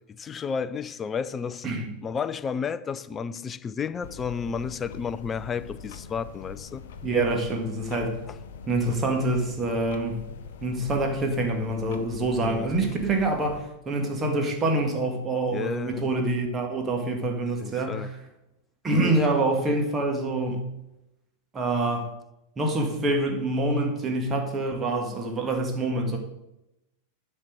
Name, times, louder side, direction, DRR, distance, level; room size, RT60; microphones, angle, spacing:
voice 1, 0.1-1.7 2.0-6.8 8.3-8.4 12.4-12.8 15.5-16.1 17.6-18.1 19.0-19.2, left 6 dB, 20° left, 0.5 m, -32 dB
sound 1, 4.0-13.6, left 6 dB, 55° left, 0.8 m, -42 dB
voice 2, 7.0-8.2 8.7-10.2 10.6-18.1 18.8-20.7 21.5-22.1 22.6-26.2, right 2 dB, 20° right, 1.9 m, -26 dB
11.0 x 4.5 x 6.4 m
figure-of-eight pair, 90°, 0 cm